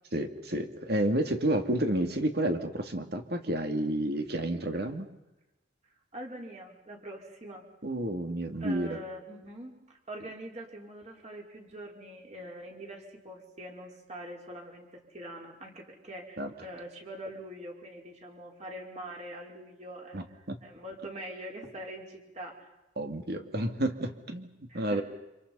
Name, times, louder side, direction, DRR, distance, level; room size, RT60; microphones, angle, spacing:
voice 1, 0.1-5.1 7.8-9.0 16.4-16.5 20.1-20.6 23.0-25.0, right 1 dB, 55° right, 6 dB, 2.6 m, -30 dB
voice 2, 6.1-7.6 8.6-22.7 24.7-25.0, right 1 dB, 35° right, 0 dB, 5.3 m, -44 dB
30.0 x 27.5 x 5.6 m, 0.98 s
head